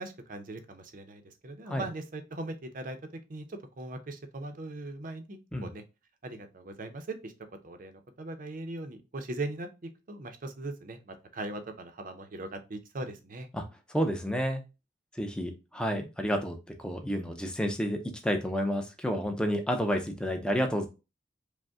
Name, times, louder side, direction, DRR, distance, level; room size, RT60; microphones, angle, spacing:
voice 1, 0.0-5.8 6.2-7.3 7.6-13.5, right 2 dB, 45° right, 7 dB, 0.6 m, -40 dB
voice 2, 13.9-14.6 15.2-20.9, equal, 5° left, 4 dB, 0.6 m, -30 dB
5.1 x 2.1 x 3.5 m, 0.28 s
head